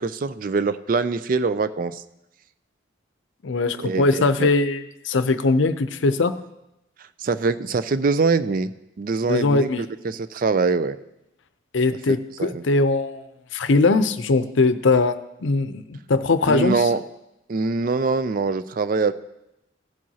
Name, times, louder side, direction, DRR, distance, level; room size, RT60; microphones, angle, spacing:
voice 1, 0.0-2.0 3.8-4.5 7.0-8.7 9.0-9.7 10.0-11.0 12.1-12.6 16.5-17.0 17.5-19.1, right 4 dB, 45° right, 13 dB, 0.4 m, -23 dB
voice 2, 3.4-6.3 9.3-9.8 11.7-13.2 13.5-16.9, left 3 dB, 80° left, 12 dB, 0.6 m, -21 dB
16.0 x 7.5 x 2.8 m, 0.88 s
head